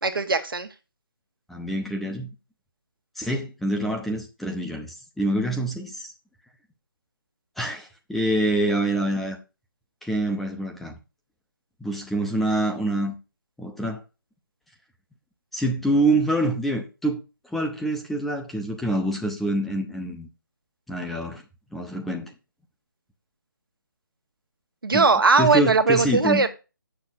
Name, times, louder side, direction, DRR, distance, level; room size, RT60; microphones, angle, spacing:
voice 1, 0.0-0.7 24.8-26.5, right 4 dB, 75° right, 1.4 m, -19 dB
voice 2, 1.5-2.3 3.2-6.1 7.6-9.4 10.0-11.0 11.8-13.1 13.6-14.0 15.5-17.2 17.5-20.3 20.9-21.4 21.7-22.3 24.9-25.1 25.4-26.5, right 1 dB, ahead, 0.7 m, -26 dB
7.8 x 6.7 x 4.2 m
figure-of-eight pair, 155°, 12 cm